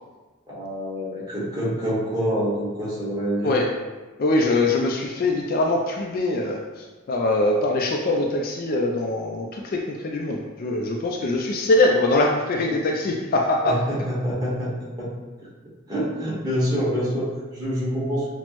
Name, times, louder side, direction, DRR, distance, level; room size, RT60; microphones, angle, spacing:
voice 1, 0.5-3.6 13.6-14.7 15.0-15.1 15.9-18.3, equal, 15° right, -8 dB, 1.2 m, -26 dB
voice 2, 4.2-13.8, left 2 dB, 40° left, 1 dB, 0.3 m, -23 dB
5.9 x 2.0 x 2.9 m, 1.2 s
head